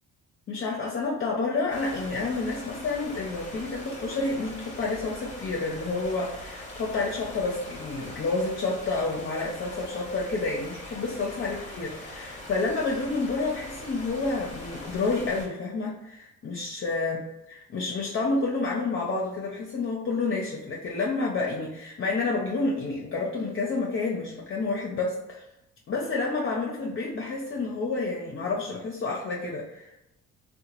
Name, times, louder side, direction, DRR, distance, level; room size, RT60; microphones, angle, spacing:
voice 1, 0.5-17.2 17.5-25.4 25.9-29.9, left 3 dB, 45° left, -2 dB, 0.6 m, -29 dB
sound 1, 1.7-15.5, left 1 dB, 25° left, 0.9 m, -42 dB
2.8 x 2.1 x 2.9 m, 0.87 s
cardioid pair, 90°, 30 cm